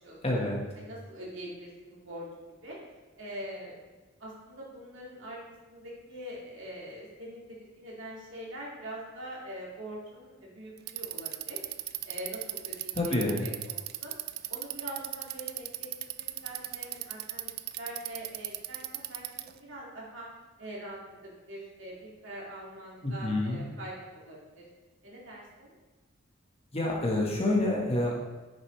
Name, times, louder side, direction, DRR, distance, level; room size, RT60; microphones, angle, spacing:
voice 1, 0.2-0.6 12.9-13.4 23.0-23.6 26.7-28.1, left 2 dB, 30° left, -2 dB, 1.6 m, -28 dB
voice 2, 0.7-2.3 2.6-2.8 3.2-3.8 4.2-5.4 5.7-11.6 12.0-14.1 14.4-20.3 20.6-24.6 25.0-25.7, right 1 dB, 65° right, -5 dB, 2.5 m, -43 dB
Bicycle, 10.8-19.6, right 15 dB, 50° right, 0.3 m, -37 dB
9.1 x 6.4 x 3.3 m, 1.2 s
head